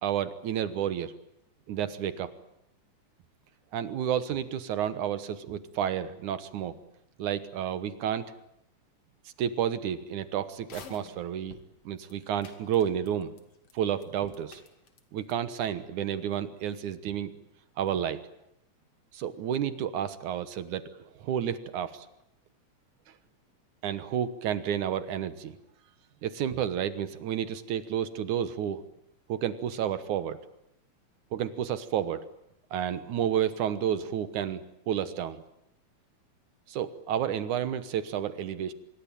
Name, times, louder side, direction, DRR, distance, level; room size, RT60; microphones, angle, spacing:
voice 1, 0.0-1.1 1.7-2.3 3.7-6.8 7.2-8.3 9.4-11.6 11.9-13.3 13.7-14.6 15.1-17.3 17.8-18.2 19.1-20.8 21.2-22.1 23.8-25.6 26.2-28.8 29.3-30.4 31.3-32.2 32.7-35.4 36.7-38.7, right 9 dB, 75° right, 13 dB, 2.6 m, -31 dB
sound 1, 10.6-11.7 12.1-12.2 12.4-13.4 13.7-13.8 14.0-15.0 15.3-15.4, left 6 dB, 50° left, 3.4 m, -48 dB
25.5 x 23.0 x 9.1 m, 0.78 s
omnidirectional pair, 3.5 m